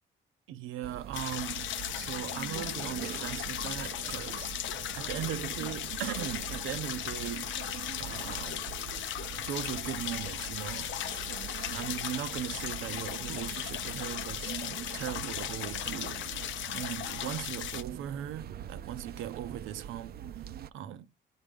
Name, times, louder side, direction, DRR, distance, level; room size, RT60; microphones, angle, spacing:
voice 1, 0.5-4.5 4.9-7.7 8.0-8.6 9.4-11.0 11.7-16.4 16.7-20.1 20.7-21.1, right 11 dB, 85° right, 0.7 m, -39 dB
sound 1, 0.8-20.7, right 10 dB, 50° right, 0.4 m, -43 dB
sound 2, 1.1-17.8, left 12 dB, 75° left, 0.5 m, -37 dB
8.0 x 3.7 x 5.3 m
cardioid pair, 90°, 20 cm